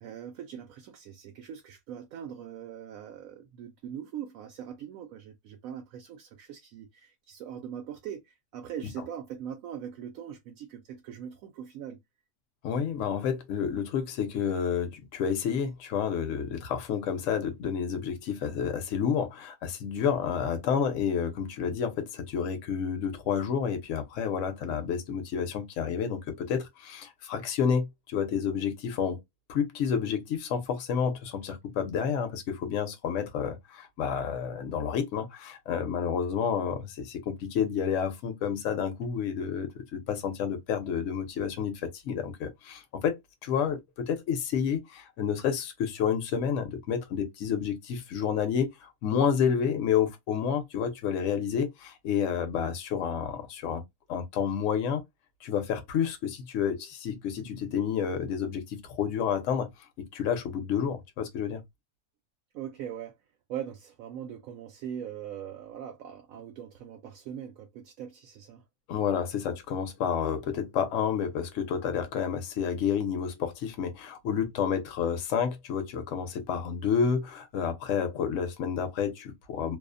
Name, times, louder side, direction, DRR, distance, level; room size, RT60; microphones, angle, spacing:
voice 1, 0.0-12.0 62.5-63.2 63.5-68.6, right 9 dB, 70° right, 1.0 m, -41 dB
voice 2, 12.6-29.2 29.5-53.8 54.1-55.0 55.4-59.7 60.0-61.6 68.9-79.8, left 7 dB, 65° left, 1.0 m, -30 dB
2.7 x 2.0 x 2.4 m
omnidirectional pair, 1.6 m